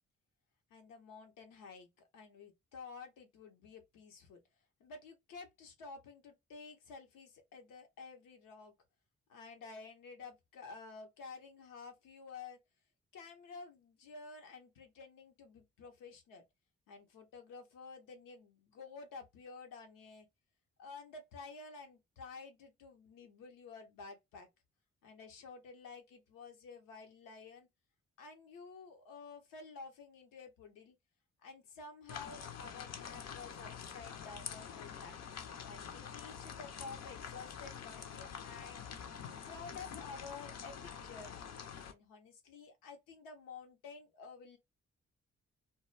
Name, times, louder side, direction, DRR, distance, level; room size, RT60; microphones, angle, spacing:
voice 1, 0.7-4.4 4.8-8.7 9.3-12.6 13.1-16.4 16.9-20.3 20.8-24.5 25.0-27.7 28.2-31.0 31.4-35.2 35.6-38.9 39.4-41.5 41.9-44.6, left 4 dB, 85° left, 0.8 m, -51 dB
sound 1, 32.1-41.9, left 7 dB, 55° left, 0.5 m, -46 dB
2.2 x 2.0 x 3.1 m
supercardioid pair, 45°, 32 cm